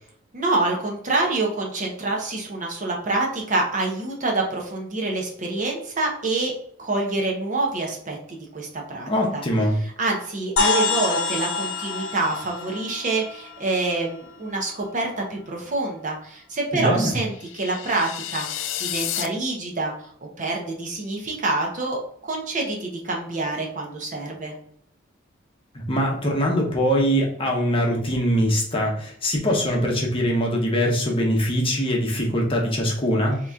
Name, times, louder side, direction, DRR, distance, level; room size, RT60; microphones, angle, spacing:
voice 1, 0.3-6.5 6.8-9.4 10.0-19.9 20.2-24.5, right 2 dB, 40° right, 0 dB, 0.9 m, -26 dB
voice 2, 9.1-9.8 16.7-17.1 25.7-33.4, equal, 25° left, -1 dB, 0.9 m, -22 dB
sound 1, 10.6-14.3, left 4 dB, 90° left, 0.7 m, -27 dB
sound 2, 17.3-19.3, left 11 dB, 65° left, 0.4 m, -31 dB
3.9 x 3.0 x 3.5 m, 0.63 s
head